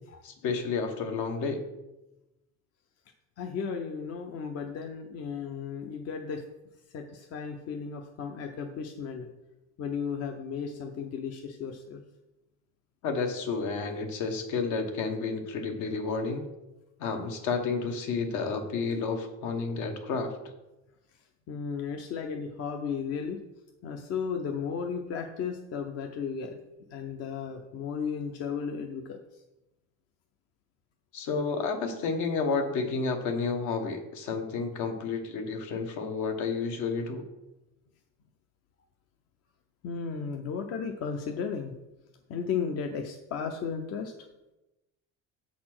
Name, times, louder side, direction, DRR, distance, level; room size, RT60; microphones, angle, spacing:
voice 1, 0.2-1.6 13.0-16.5 17.0-20.5 31.1-37.3, left 4 dB, 75° left, 5 dB, 1.3 m, -31 dB
voice 2, 3.4-6.4 6.9-9.3 9.8-12.0 21.1-21.2 21.5-23.4 23.8-26.6 26.9-29.4 39.8-41.7 42.3-44.1, left 6 dB, 55° left, 4 dB, 0.7 m, -34 dB
7.5 x 4.2 x 6.1 m, 0.98 s
cardioid pair, 140°, 30 cm